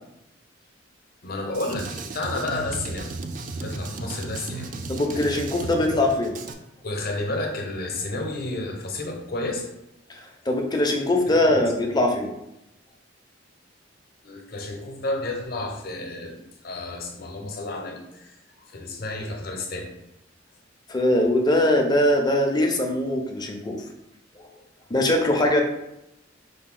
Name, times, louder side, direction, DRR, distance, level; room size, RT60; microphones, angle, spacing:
voice 1, 1.2-3.2 3.5-4.7 5.1-5.3 5.9-6.1 6.8-9.7 11.3-11.6 14.2-16.4 16.6-18.3 18.6-19.9 25.4-25.6, left 2 dB, 55° left, 1 dB, 0.8 m, -31 dB
Drum kit, 1.5-6.5, right 3 dB, 45° right, 0.4 m, -34 dB
voice 2, 4.9-6.4 10.1-12.3 20.9-23.8 24.4-24.5 24.9-25.6, left 1 dB, 20° left, 2 dB, 0.6 m, -22 dB
5.2 x 2.2 x 3.7 m, 0.85 s
head